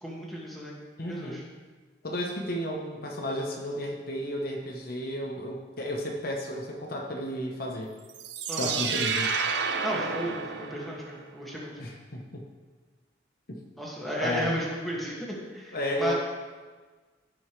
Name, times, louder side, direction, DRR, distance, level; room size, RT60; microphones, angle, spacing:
voice 1, 0.0-0.8 1.0-1.4 8.5-8.8 9.8-11.7 13.8-16.1, equal, ahead, -5 dB, 1.9 m, -34 dB
voice 2, 1.0-1.4 2.0-7.9 8.6-9.3 11.8-12.4 13.5-13.6 14.2-14.5 15.7-16.1, left 1 dB, 50° left, 0 dB, 0.9 m, -33 dB
sound 1, 8.1-11.2, right 5 dB, 65° right, 0.7 m, -30 dB
16.0 x 5.3 x 3.2 m, 1.4 s
head